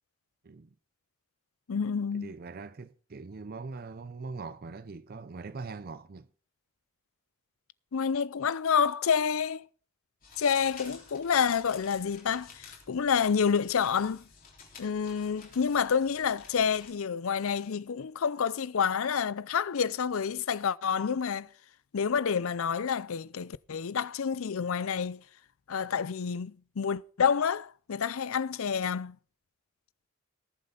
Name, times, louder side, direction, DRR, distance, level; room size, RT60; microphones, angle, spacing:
voice 1, 0.4-0.7 2.1-6.3, right 4 dB, 40° right, 0.5 m, -42 dB
voice 2, 1.7-2.3 7.9-9.7 10.4-14.2 14.8-21.5 21.9-25.2 25.7-29.2, left 6 dB, 70° left, 0.5 m, -28 dB
sound 1, 10.2-16.9, left 5 dB, 40° left, 3.6 m, -52 dB
19.5 x 7.7 x 3.8 m
head